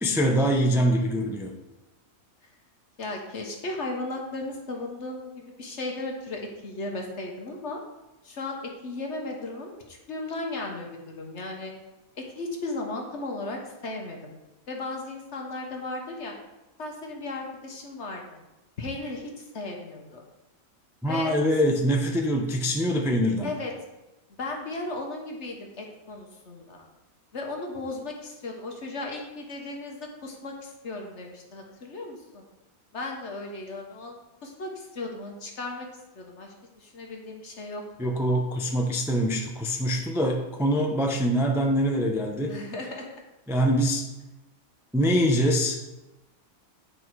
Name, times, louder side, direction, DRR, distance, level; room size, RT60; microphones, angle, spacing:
voice 1, 0.0-1.5 21.0-23.5 38.0-42.6 43.5-44.0 44.9-45.8, equal, 5° right, 1 dB, 0.5 m, -24 dB
voice 2, 3.0-7.8 8.2-11.7 12.2-14.3 14.7-16.3 16.8-18.4 18.8-20.2 21.1-21.3 21.6-21.7 23.4-23.7 24.4-26.8 27.3-32.4 32.9-35.9 36.1-36.5 36.8-38.1 42.5-43.1, left 2 dB, 55° left, 1 dB, 1.4 m, -36 dB
8.4 x 5.5 x 4.6 m, 1.0 s
omnidirectional pair, 1.5 m